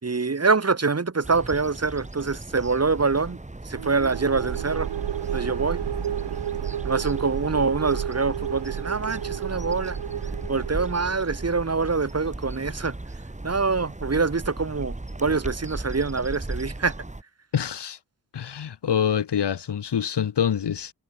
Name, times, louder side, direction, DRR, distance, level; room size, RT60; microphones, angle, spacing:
voice 1, 0.0-3.4 3.7-4.9 5.3-5.8 6.8-10.0 10.5-12.9 13.4-16.9, right 4 dB, 35° right, 5.5 m, -25 dB
sound 1, 1.2-17.2, right 2 dB, 15° right, 7.0 m, -37 dB
sound 2, 3.7-11.5, right 9 dB, 80° right, 2.9 m, -31 dB
voice 2, 17.5-18.0 18.3-20.9, left 8 dB, 75° left, 6.3 m, -25 dB
cardioid pair, 80°, 41 cm